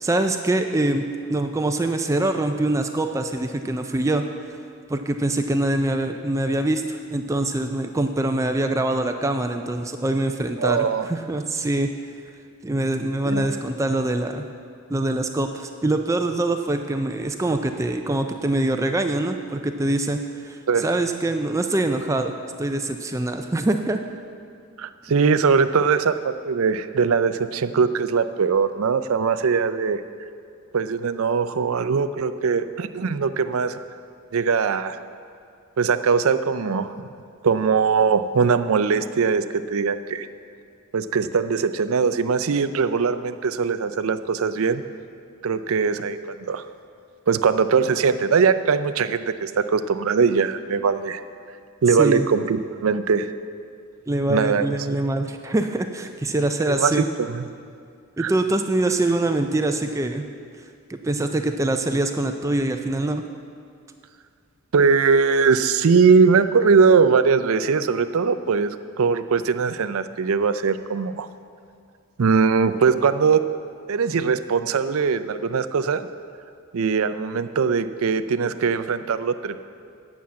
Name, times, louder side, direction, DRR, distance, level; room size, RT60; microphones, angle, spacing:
voice 1, 0.0-4.2 4.5-4.6 4.9-11.9 12.6-14.5 14.9-22.3 22.6-24.0 52.0-52.3 54.1-57.1 58.2-60.3 60.9-63.2, right 2 dB, 15° right, 6 dB, 0.3 m, -24 dB
voice 2, 10.6-11.1 13.2-13.5 20.7-21.0 24.8-30.0 30.7-33.8 34.3-35.0 35.8-37.1 37.4-40.3 40.9-44.8 45.4-46.6 47.3-51.2 51.8-53.3 54.3-54.8 56.6-57.5 58.2-58.3 64.7-71.3 72.2-73.4 73.9-76.1 76.7-79.6, right 5 dB, 70° right, 11 dB, 0.5 m, -21 dB
9.4 x 7.1 x 7.5 m, 2.4 s
head